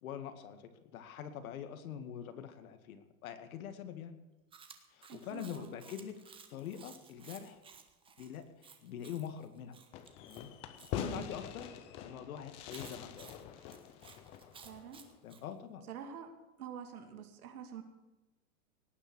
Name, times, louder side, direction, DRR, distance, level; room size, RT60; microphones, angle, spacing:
voice 1, 0.0-4.2 4.9-7.6 8.2-9.8 10.2-10.5 10.9-11.7 12.0-13.3 15.2-15.9, left 9 dB, 70° left, 8 dB, 2.3 m, -44 dB
Chewing mastication, 4.5-10.9 12.7-15.4, right 6 dB, 10° right, 1.1 m, -56 dB
voice 2, 5.1-5.8 11.0-11.3 14.6-15.0 15.9-16.3 16.6-17.8, right 8 dB, 85° right, 6 dB, 2.8 m, -46 dB
Fireworks, 9.9-15.2, left 9 dB, 15° left, 0.4 m, -45 dB
18.5 x 9.4 x 6.3 m, 1.1 s
supercardioid pair, 160°, 43 cm